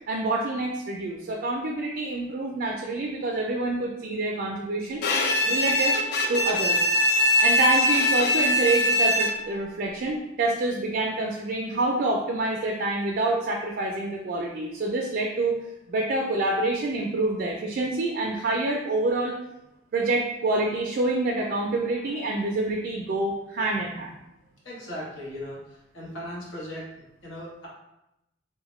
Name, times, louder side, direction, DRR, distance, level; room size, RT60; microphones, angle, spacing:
voice 1, 0.1-5.0 5.4-6.0 6.3-6.9 7.4-15.6 15.9-19.4 19.9-24.1, right 2 dB, 55° right, -1 dB, 0.3 m, -27 dB
Bowed string instrument, 5.0-9.6, left 1 dB, 55° left, 0.3 m, -22 dB
voice 2, 24.6-27.7, equal, 90° left, -5 dB, 1.0 m, -38 dB
2.8 x 2.1 x 3.0 m, 0.87 s
head